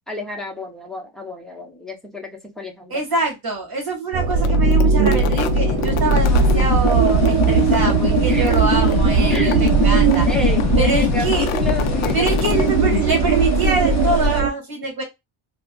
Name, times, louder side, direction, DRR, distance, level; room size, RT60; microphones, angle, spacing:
voice 1, 0.1-2.3 2.6-3.0 8.2-9.0 9.3-9.9 10.2-12.4, left 1 dB, ahead, 1 dB, 0.7 m, -30 dB
voice 2, 2.9-10.3 10.8-11.5 12.1-15.0, right 3 dB, 45° right, 0 dB, 2.0 m, -24 dB
sound 1, 4.1-14.5, right 6 dB, 70° right, 0.6 m, -19 dB
sound 2, 4.3-13.3, left 10 dB, 80° left, 0.6 m, -24 dB
sound 3, 5.4-14.4, left 2 dB, 35° left, 0.4 m, -26 dB
4.1 x 2.1 x 2.2 m, 0.20 s
cardioid pair, 155°, 50 cm